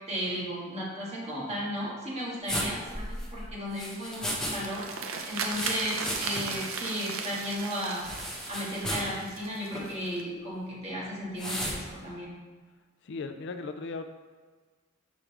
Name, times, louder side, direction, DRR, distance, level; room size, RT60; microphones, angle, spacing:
voice 1, 0.1-4.9 5.2-8.0 8.5-12.3, equal, 30° right, -5 dB, 1.8 m, -35 dB
sound 1, 2.5-4.6 4.8-6.6 6.9-7.0 8.0-9.1 9.7-9.9 11.4-11.8, equal, 5° left, 1.2 m, -34 dB
sound 2, 4.1-10.2, right 4 dB, 75° right, 0.7 m, -37 dB
voice 2, 13.0-14.0, left 4 dB, 60° left, 8 dB, 0.4 m, -37 dB
6.1 x 5.0 x 3.3 m, 1.4 s
head